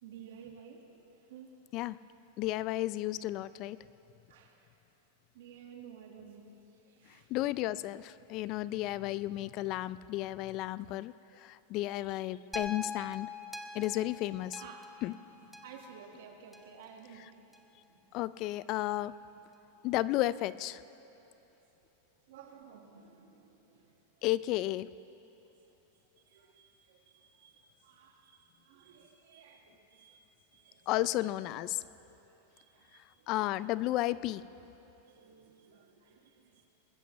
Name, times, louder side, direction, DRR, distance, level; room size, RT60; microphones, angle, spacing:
voice 1, 0.0-1.0 1.3-1.5 4.3-4.6 5.3-6.5 6.9-7.3 14.6-14.9 15.4-17.3 17.9-18.0 22.3-23.9 26.3-27.0 27.4-30.3 30.5-30.9 32.0-32.2 32.6-33.3 35.1-36.6, right 7 dB, 75° right, 3 dB, 1.7 m, -54 dB
voice 2, 2.4-3.8 7.3-13.3 13.7-14.6 15.0-15.2 17.1-17.3 18.1-19.1 19.8-20.8 24.2-24.9 30.9-31.8 33.3-34.5, left 16 dB, 45° left, 18 dB, 0.3 m, -33 dB
sound 1, 12.5-16.9 17.5-17.6, left 3 dB, 5° left, 0.7 m, -44 dB
21.0 x 13.5 x 3.2 m, 3.0 s
supercardioid pair, 130°, 0 cm